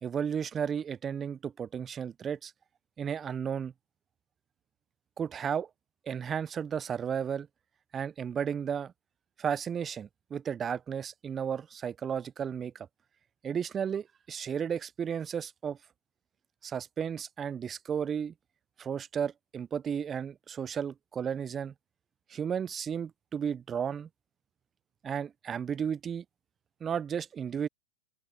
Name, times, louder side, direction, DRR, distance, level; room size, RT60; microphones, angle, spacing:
voice 1, 0.0-2.5 3.0-3.7 5.2-5.7 6.1-7.5 7.9-8.9 9.4-12.9 13.4-15.8 16.6-18.3 18.8-21.7 22.3-24.1 25.0-26.2 26.8-27.7, right 7 dB, 25° right, 0.6 m, -33 dB
open air
hypercardioid pair, 105°, 0 cm